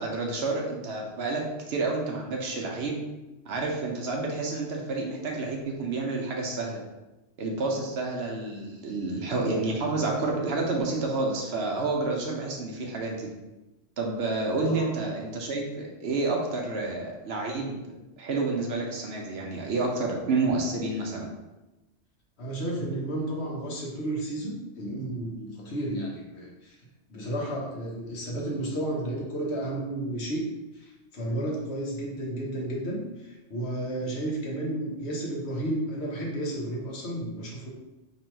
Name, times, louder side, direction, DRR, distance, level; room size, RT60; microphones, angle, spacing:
voice 1, 0.0-3.0 3.5-6.8 7.4-13.3 14.0-17.8 18.2-21.3, right 3 dB, 65° right, 0 dB, 0.8 m, -29 dB
voice 2, 22.4-26.8 27.1-30.4 30.7-37.7, right 1 dB, 60° left, -2 dB, 1.1 m, -32 dB
2.9 x 2.7 x 4.4 m, 1.0 s
omnidirectional pair, 1.3 m